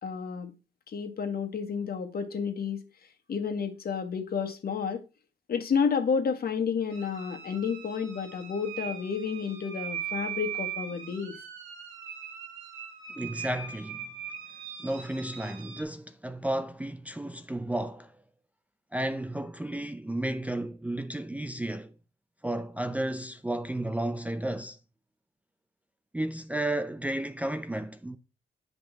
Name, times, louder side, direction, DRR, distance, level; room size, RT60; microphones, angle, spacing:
voice 1, 0.0-0.5 0.9-2.8 3.3-5.0 5.5-11.3, left 6 dB, 50° left, 1.7 m, -30 dB
sound 1, 6.9-15.8, right 8 dB, 85° right, 2.0 m, -40 dB
voice 2, 13.1-14.1 14.8-18.2 18.9-21.9 22.4-24.8 26.1-28.2, right 1 dB, 5° right, 0.5 m, -33 dB
7.9 x 5.3 x 4.6 m
cardioid pair, 90°, 20 cm